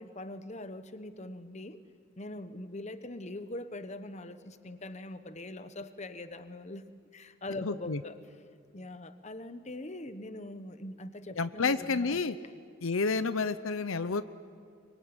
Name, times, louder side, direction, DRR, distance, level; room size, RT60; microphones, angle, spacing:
voice 1, 0.0-1.8 2.2-6.8 7.1-8.2 8.7-12.2, left 2 dB, 35° left, 11 dB, 1.1 m, -42 dB
voice 2, 7.6-8.0 11.4-12.4 12.8-14.2, left 4 dB, 70° left, 12 dB, 0.7 m, -30 dB
24.5 x 23.5 x 9.7 m, 2.2 s
head